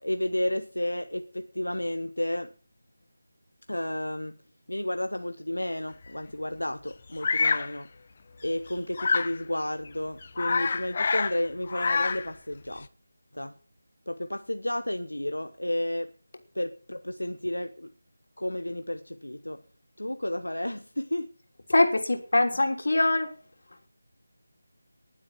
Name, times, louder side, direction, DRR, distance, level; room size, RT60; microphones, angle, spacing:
voice 1, 0.0-2.5 3.7-4.4 4.7-7.9 8.4-12.9 13.3-13.5 14.1-16.1 16.5-17.9 18.4-19.6 20.0-21.3, left 1 dB, 90° left, 1.0 m, -32 dB
Bird vocalization bird call bird song, 7.2-7.7 9.0-9.4 9.9-10.0 10.2-11.4 11.6-12.3, left 4 dB, 40° left, 0.9 m, -26 dB
voice 2, 21.7-23.3, left 2 dB, 65° left, 3.3 m, -23 dB
20.0 x 7.7 x 5.6 m
figure-of-eight pair, 165°, 0 cm